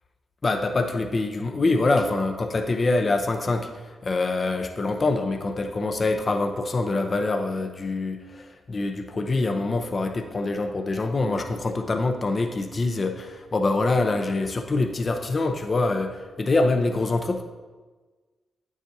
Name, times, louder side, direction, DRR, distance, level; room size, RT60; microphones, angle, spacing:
voice 1, 0.4-17.4, left 3 dB, 40° left, 5 dB, 0.6 m, -25 dB
8.9 x 7.2 x 2.7 m, 1.3 s
cardioid pair, 70°, 0 cm